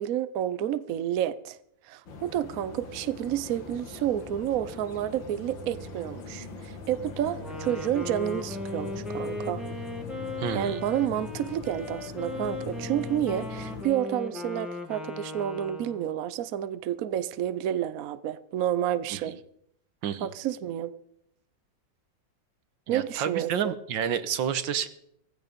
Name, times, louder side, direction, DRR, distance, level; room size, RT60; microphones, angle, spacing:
voice 1, 0.0-1.6 1.8-9.6 10.5-19.4 20.2-20.9 22.9-23.8, right 11 dB, 60° right, 1.0 m, -30 dB
sound 1, 2.1-13.8, left 4 dB, 90° left, 2.6 m, -41 dB
Wind instrument woodwind instrument, 7.3-16.3, left 2 dB, ahead, 2.0 m, -38 dB
voice 2, 10.4-10.8 19.1-19.2 20.0-20.3 22.9-24.9, right 8 dB, 90° right, 1.8 m, -29 dB
16.0 x 15.5 x 5.2 m
omnidirectional pair, 2.0 m